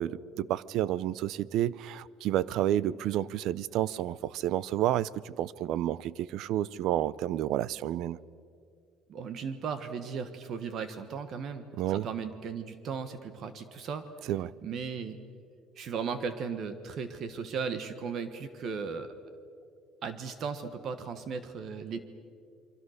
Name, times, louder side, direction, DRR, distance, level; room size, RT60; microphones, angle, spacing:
voice 1, 0.0-8.2 11.8-12.1 14.3-14.5, right 12 dB, 60° right, 0.5 m, -30 dB
voice 2, 9.1-14.1 14.6-15.2 15.8-19.1 20.0-22.0, right 6 dB, 40° right, 1.3 m, -36 dB
29.0 x 24.0 x 6.5 m
cardioid pair, 165°, 0 cm